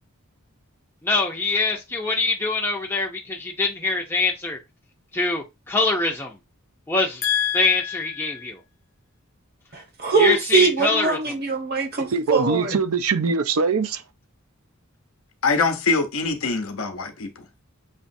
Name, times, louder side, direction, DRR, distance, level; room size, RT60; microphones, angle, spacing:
voice 1, 1.1-4.6 5.1-6.4 6.9-7.2 7.5-8.6 10.2-11.3, left 3 dB, 10° left, 0.6 m, -24 dB
voice 2, 7.2-7.8 8.2-8.4 15.4-17.3, left 5 dB, 75° left, 0.8 m, -23 dB
voice 3, 9.7-12.8, right 4 dB, 45° right, 1.0 m, -22 dB
voice 4, 12.0-14.0, right 5 dB, 85° right, 0.5 m, -23 dB
6.6 x 3.0 x 2.6 m
head